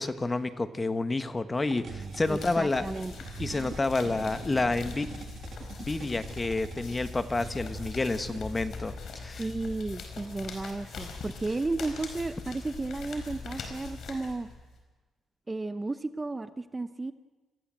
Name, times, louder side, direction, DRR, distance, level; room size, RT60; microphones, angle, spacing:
voice 1, 0.0-2.9 3.4-5.1 5.8-9.5, left 3 dB, 20° left, 11 dB, 1.4 m, -29 dB
sound 1, 1.5-8.4, right 6 dB, 55° right, 1.7 m, -44 dB
sound 2, 1.9-14.8, left 4 dB, 60° left, 4.6 m, -42 dB
voice 2, 2.3-3.1 9.4-14.5 15.5-17.1, right 3 dB, 20° right, 12 dB, 0.8 m, -33 dB
26.5 x 15.0 x 7.7 m, 1.3 s
cardioid pair, 90°, 0 cm